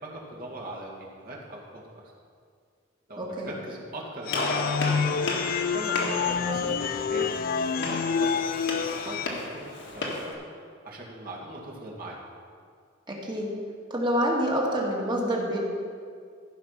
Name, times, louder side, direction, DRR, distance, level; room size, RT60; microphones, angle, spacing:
voice 1, 0.0-2.1 3.1-4.6 4.9-5.2 5.7-7.3 7.8-8.7 8.9-10.3 10.8-12.2, right 1 dB, 45° right, -4 dB, 2.1 m, -40 dB
voice 2, 3.2-3.5 13.1-13.5 13.9-15.6, equal, 25° right, -2 dB, 1.8 m, -27 dB
Gunshot gunfire, 4.3-10.3, left 2 dB, 65° left, 1.7 m, -34 dB
sound 1, 4.3-9.3, left 6 dB, 45° left, 0.3 m, -28 dB
14.5 x 5.4 x 5.8 m, 2.1 s
head